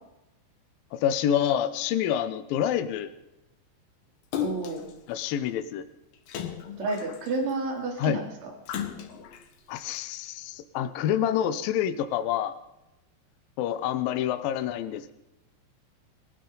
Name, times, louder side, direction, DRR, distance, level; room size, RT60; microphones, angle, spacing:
voice 1, 0.9-3.1 5.1-5.9 8.0-8.2 9.7-12.5 13.6-15.1, left 10 dB, 90° left, 11 dB, 2.0 m, -27 dB
Splash splatter, 4.3-4.9 6.3-7.5 8.7-9.4 10.0-10.1, left 10 dB, 65° left, 3.2 m, -34 dB
voice 2, 4.4-4.9 6.8-8.5, right 3 dB, 80° right, 1 dB, 5.6 m, -30 dB
22.0 x 16.0 x 4.0 m, 0.93 s
omnidirectional pair, 5.4 m